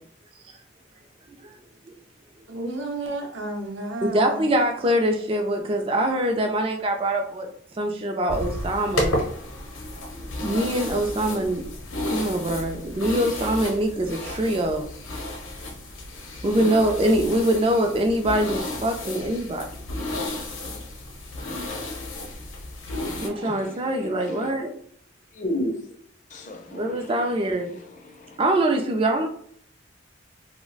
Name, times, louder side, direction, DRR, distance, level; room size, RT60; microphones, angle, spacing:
voice 1, 2.5-4.5 16.6-16.8 23.2-23.7, right 2 dB, 70° right, 0.6 m, -33 dB
voice 2, 4.1-7.5 7.8-9.2 10.1-11.6 12.1-14.8 16.4-19.6 23.2-24.7 26.7-27.7 28.4-29.3, right 1 dB, 30° right, 0.3 m, -23 dB
sound 1, 8.3-23.3, left 1 dB, 80° left, 0.7 m, -32 dB
voice 3, 23.2-24.5 25.3-26.0 26.3-28.4, left 1 dB, 40° left, 0.5 m, -35 dB
2.3 x 2.1 x 3.8 m
head